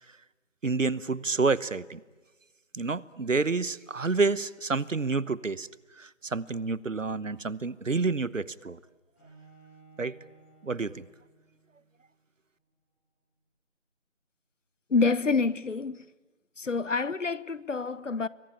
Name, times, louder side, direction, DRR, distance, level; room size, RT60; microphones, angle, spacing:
voice 1, 0.6-2.0 2.7-5.7 6.0-8.8 10.0-10.2 10.6-11.0, right 4 dB, 85° right, 1.1 m, -29 dB
Bowed string instrument, 9.2-12.1, right 4 dB, 10° left, 6.3 m, -57 dB
voice 2, 14.9-16.0 16.6-18.3, left 4 dB, 75° left, 1.0 m, -27 dB
28.5 x 23.0 x 8.8 m
figure-of-eight pair, 170°, 38 cm